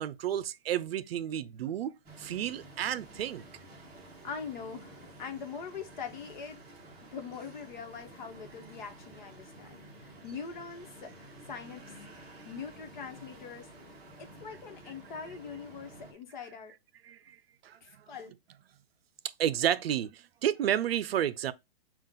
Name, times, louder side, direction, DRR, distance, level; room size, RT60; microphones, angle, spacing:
voice 1, 0.0-1.9 2.2-3.4 17.1-17.2 17.6-17.8 19.4-21.5, right 10 dB, 75° right, 0.5 m, -31 dB
sound 1, 2.0-16.1, right 1 dB, 10° right, 0.9 m, -51 dB
voice 2, 4.2-6.6 7.0-11.8 12.4-13.7 14.2-16.8 17.8-18.3, left 6 dB, 50° left, 1.1 m, -43 dB
5.6 x 2.4 x 3.6 m
hypercardioid pair, 170°, 31 cm